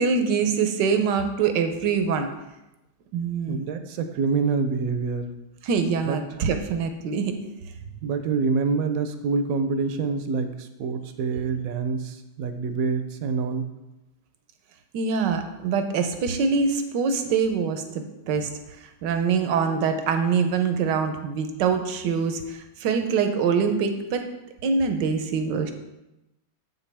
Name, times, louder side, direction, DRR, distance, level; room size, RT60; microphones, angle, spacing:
voice 1, 0.0-2.3 3.1-3.6 5.6-7.4 14.9-18.5 19.0-24.2 24.6-25.7, right 5 dB, 90° right, 7 dB, 1.4 m, -24 dB
voice 2, 3.5-5.3 6.1-6.2 8.0-13.7, right 4 dB, 70° right, 8 dB, 0.9 m, -26 dB
7.6 x 6.1 x 3.4 m, 0.95 s
omnidirectional pair, 1.9 m